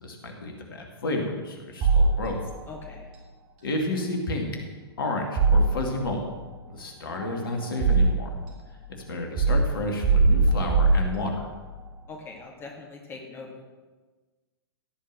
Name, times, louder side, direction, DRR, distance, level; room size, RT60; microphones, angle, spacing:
voice 1, 0.0-2.4 3.6-4.5 5.0-6.2 6.7-8.3 8.9-11.4, left 2 dB, 60° left, 2 dB, 2.4 m, -31 dB
sound 1, 1.8-2.7 5.4-6.2 7.1-8.5 9.4-11.6, right 3 dB, 35° right, 2.9 m, -22 dB
voice 2, 2.7-3.1 12.1-13.6, left 3 dB, 15° left, 0 dB, 2.0 m, -42 dB
16.5 x 5.6 x 7.5 m, 1.3 s
figure-of-eight pair, 110°, 13 cm